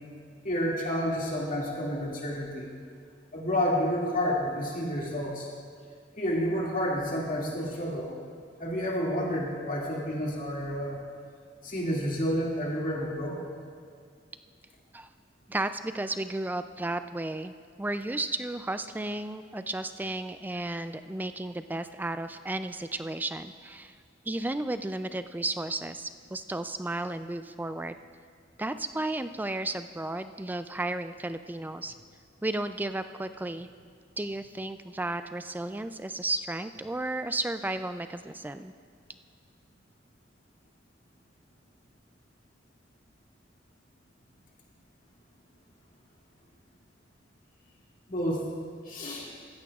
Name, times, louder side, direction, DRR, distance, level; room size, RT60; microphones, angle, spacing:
voice 1, 0.4-2.7 3.3-5.5 6.2-8.1 8.6-11.0 11.6-13.4 48.1-48.4 48.9-49.3, equal, 45° left, -3 dB, 2.2 m, -30 dB
voice 2, 15.5-17.5 17.8-24.0 24.3-28.0 28.6-31.9 32.4-33.7 34.2-38.7, right 2 dB, 10° right, 10 dB, 0.3 m, -33 dB
15.0 x 14.5 x 2.4 m, 2.1 s
head